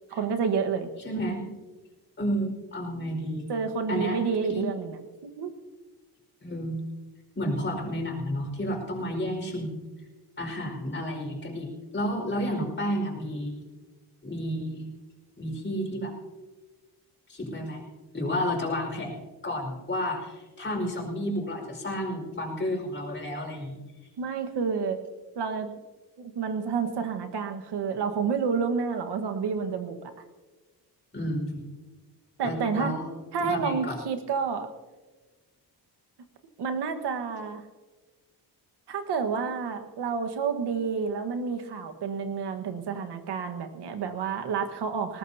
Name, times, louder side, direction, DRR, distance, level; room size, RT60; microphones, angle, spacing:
voice 1, 0.1-0.9 3.5-5.0 5.2-5.5 24.2-25.0 25.3-25.7 26.2-30.1 32.4-32.9 33.3-34.7 36.6-37.6 38.9-45.2, right 5 dB, 75° right, 6 dB, 1.6 m, -29 dB
voice 2, 1.0-1.5 2.2-3.5 3.9-4.2 4.5-4.6 6.4-6.8 7.4-9.9 10.4-13.7 14.2-14.9 15.4-16.1 17.3-17.8 18.1-19.1 19.4-23.8 31.1-31.7 32.4-33.1 33.4-34.0, equal, 25° left, -1 dB, 5.2 m, -31 dB
20.0 x 19.0 x 2.9 m, 1.3 s
cardioid pair, 110°, 41 cm